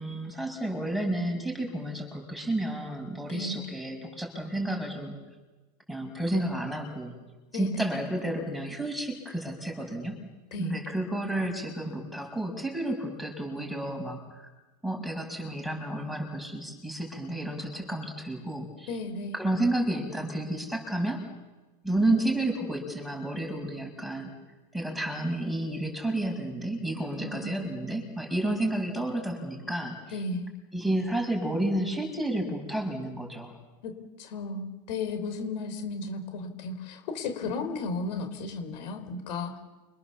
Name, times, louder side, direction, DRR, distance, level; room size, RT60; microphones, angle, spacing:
voice 1, 0.0-5.2 5.9-7.1 7.5-10.2 10.6-14.5 14.8-19.0 19.3-21.2 21.8-24.3 24.7-30.2 30.7-33.5, right 1 dB, ahead, 3 dB, 6.7 m, -31 dB
voice 2, 7.5-7.9 10.5-10.7 18.9-19.4 27.2-27.8 30.1-30.5 33.8-33.9 34.2-39.6, left 3 dB, 80° left, 7 dB, 5.2 m, -34 dB
29.5 x 26.5 x 7.3 m, 1.2 s
supercardioid pair, 130°, 21 cm